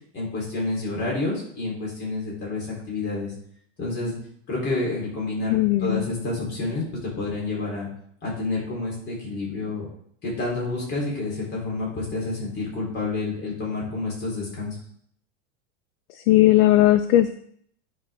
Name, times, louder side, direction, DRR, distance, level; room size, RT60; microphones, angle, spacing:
voice 1, 0.1-3.3 3.8-4.2 4.5-7.9 8.2-9.9 10.2-14.8, left 2 dB, 30° left, -3 dB, 4.0 m, -29 dB
voice 2, 5.5-6.1 16.1-17.3, left 14 dB, 55° left, 12 dB, 0.5 m, -18 dB
11.0 x 5.7 x 3.7 m, 0.65 s
supercardioid pair, 140°, 36 cm